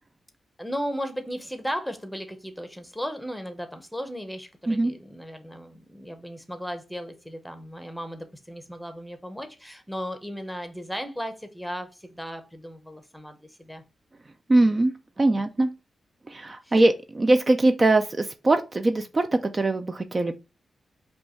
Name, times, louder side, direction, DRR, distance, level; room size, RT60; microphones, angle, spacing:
voice 1, 0.6-13.8 16.6-16.8, equal, ahead, 0.8 m, -36 dB
voice 2, 14.5-15.7 16.3-20.3, right 2 dB, 30° right, 0.4 m, -22 dB
5.2 x 2.3 x 4.4 m
cardioid pair, 100°, 0 cm